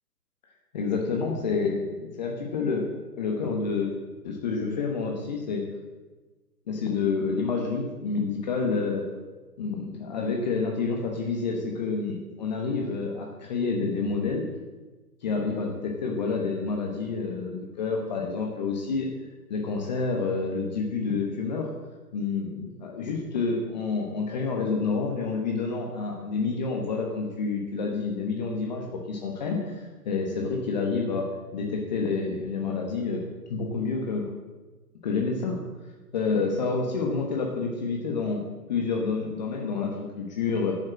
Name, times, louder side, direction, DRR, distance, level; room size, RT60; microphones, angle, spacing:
voice 1, 0.7-2.8 3.2-3.9 4.2-5.6 6.7-9.0 9.6-14.4 15.2-19.1 19.5-21.7 22.1-31.3 31.5-33.2 33.5-34.2 35.0-35.6 36.1-40.7, left 4 dB, 30° left, 0 dB, 1.2 m, -28 dB
10.5 x 6.5 x 7.4 m, 1.2 s
figure-of-eight pair, 140°, 47 cm